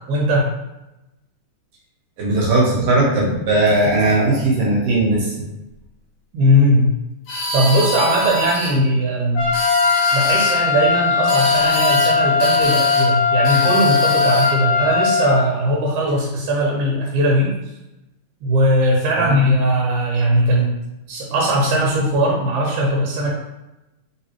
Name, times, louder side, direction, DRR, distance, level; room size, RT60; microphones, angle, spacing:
voice 1, 0.1-0.5 6.3-6.9 7.5-9.5 10.1-17.5 18.4-20.7 21.1-23.3, equal, 85° right, -3 dB, 2.3 m, -19 dB
voice 2, 2.2-5.4 19.1-19.4, right 2 dB, 65° right, -4 dB, 2.2 m, -18 dB
sound 1, 7.3-8.7 9.4-10.6 11.3-12.1 12.4-13.1 13.4-14.6, left 1 dB, 60° left, 1.7 m, -25 dB
Trumpet, 9.4-15.4, left 5 dB, 80° left, 0.9 m, -18 dB
4.0 x 3.9 x 3.0 m, 0.95 s
omnidirectional pair, 3.3 m